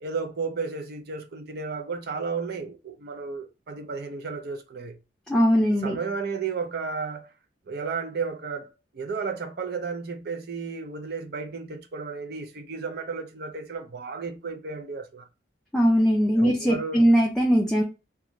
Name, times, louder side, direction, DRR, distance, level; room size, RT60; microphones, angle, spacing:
voice 1, 0.0-5.0 5.8-7.3 7.7-15.2 16.3-17.1, right 4 dB, 55° right, 0.5 m, -33 dB
voice 2, 5.3-6.0 15.7-17.8, equal, 5° left, 0.4 m, -20 dB
2.5 x 2.3 x 3.0 m
head